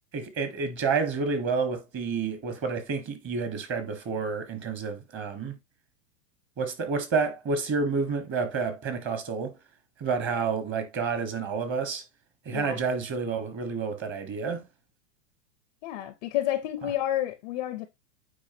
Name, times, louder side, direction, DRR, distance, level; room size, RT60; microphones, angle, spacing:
voice 1, 0.1-5.6 6.6-9.6 10.0-12.0 12.4-14.7, right 5 dB, 25° right, 1.4 m, -29 dB
voice 2, 12.5-12.8 15.8-17.9, left 13 dB, 30° left, 0.5 m, -30 dB
8.6 x 4.8 x 2.7 m
hypercardioid pair, 145°, 47 cm